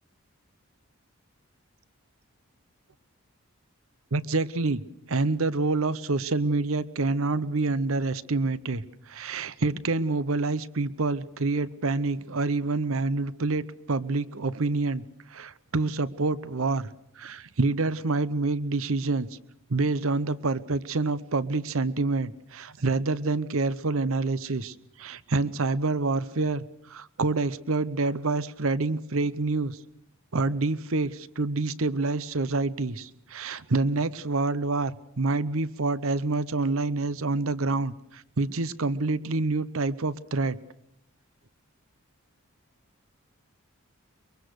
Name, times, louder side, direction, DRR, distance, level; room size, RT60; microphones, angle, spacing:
voice 1, 4.1-4.8 5.1-15.0 15.3-16.9 17.2-19.3 19.7-29.8 30.3-34.9 35.2-40.6, right 3 dB, 65° right, 17 dB, 0.8 m, -27 dB
23.0 x 22.5 x 6.5 m, 0.78 s
head